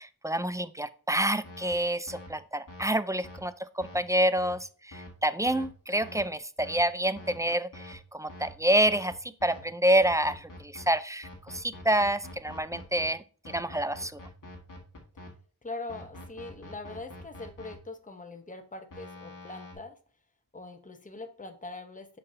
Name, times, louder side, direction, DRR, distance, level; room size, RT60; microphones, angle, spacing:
voice 1, 0.0-13.2 13.5-14.1, right 1 dB, 10° right, 13 dB, 0.3 m, -28 dB
sound 1, 1.4-1.7 2.1-2.3 2.7-2.8 3.2-3.4 3.8-4.0 4.4-4.5 4.9-5.1 5.5-5.7 6.0-6.2 6.6-6.8 7.2-7.3 7.7-7.9 8.3-8.5 8.9-9.1 9.4-9.6 10.0-10.8 11.2-13.0 13.4-15.3 15.9-17.7 18.9-19.7, left 1 dB, 50° left, 1.5 m, -45 dB
voice 2, 15.6-20.0 20.5-22.2, left 2 dB, 20° left, 6 dB, 0.8 m, -42 dB
6.6 x 5.6 x 2.7 m, 0.39 s
wide cardioid pair, 55°, 40 cm